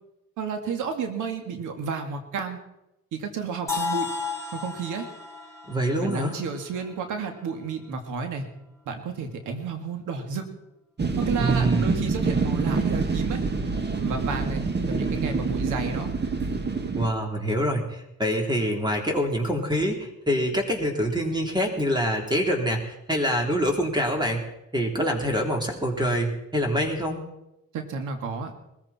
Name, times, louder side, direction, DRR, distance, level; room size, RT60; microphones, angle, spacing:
voice 1, 0.4-2.6 3.1-4.1 4.5-5.1 5.9-8.5 8.9-10.5 11.2-13.4 14.0-16.1 27.7-28.5, right 5 dB, 85° right, 6 dB, 2.4 m, -32 dB
sound 1, 3.7-7.6, left 5 dB, 10° left, 3.7 m, -34 dB
voice 2, 5.7-6.4 11.4-12.1 16.9-24.4 24.7-27.2, equal, 15° right, 2 dB, 3.7 m, -25 dB
sound 2, 11.0-17.1, right 4 dB, 35° right, 2.0 m, -26 dB
20.5 x 14.5 x 4.5 m, 0.87 s
cardioid pair, 90°, 30 cm